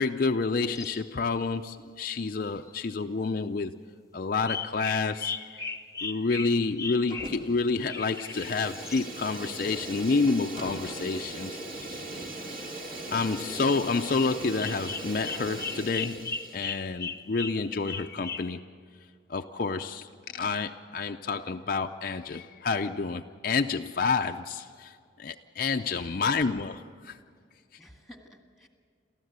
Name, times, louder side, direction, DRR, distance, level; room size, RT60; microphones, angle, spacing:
voice 1, 0.0-3.8 4.1-5.7 6.0-11.6 13.1-18.6 19.3-27.2, left 4 dB, 45° left, 0.5 m, -29 dB
sound 1, 0.8-1.4 2.7-2.8 4.5-9.1 11.8-12.1 14.6-18.5, left 5 dB, 15° left, 0.8 m, -37 dB
Fire, 7.1-7.6 7.9-16.6, right 2 dB, 45° right, 3.3 m, -39 dB
voice 2, 25.8-26.3 27.8-28.7, left 1 dB, ahead, 1.9 m, -52 dB
29.0 x 14.0 x 8.1 m
head